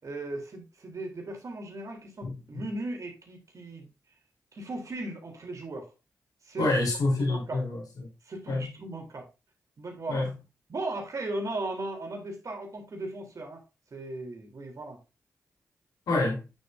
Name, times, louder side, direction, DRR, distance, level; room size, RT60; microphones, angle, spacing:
voice 1, 0.0-3.9 4.5-5.9 6.4-6.7 7.2-7.6 8.2-9.3 9.8-10.3 10.7-13.6 13.9-15.0, right 2 dB, 60° right, 3.5 m, -37 dB
voice 2, 6.6-8.1 8.5-8.7 10.1-10.3 16.1-16.5, left 2 dB, 80° left, 4.1 m, -27 dB
9.0 x 7.0 x 2.7 m
supercardioid pair, 45°, 6 cm